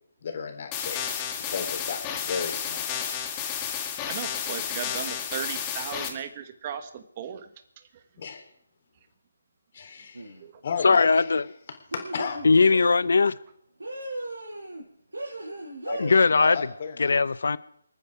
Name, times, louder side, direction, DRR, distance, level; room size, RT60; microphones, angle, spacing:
voice 1, 0.2-1.0 1.5-3.1 8.2-8.4 9.7-10.3 10.6-11.3 12.1-12.4 15.8-17.2, left 6 dB, 45° left, 4 dB, 3.8 m, -34 dB
sound 1, 0.7-6.1, left 8 dB, 20° left, 2.0 m, -32 dB
voice 2, 4.1-7.5 10.4-10.5, right 8 dB, 30° right, 9 dB, 1.3 m, -36 dB
sound 2, 10.1-10.5 11.9-13.1 13.8-14.8 15.1-16.1, right 1 dB, 85° right, 5.8 m, -36 dB
voice 3, 10.8-11.4 12.4-13.4 16.0-16.7 17.0-17.6, left 4 dB, 70° left, 18 dB, 0.7 m, -20 dB
28.5 x 9.5 x 4.9 m, 0.71 s
figure-of-eight pair, 155°, 0 cm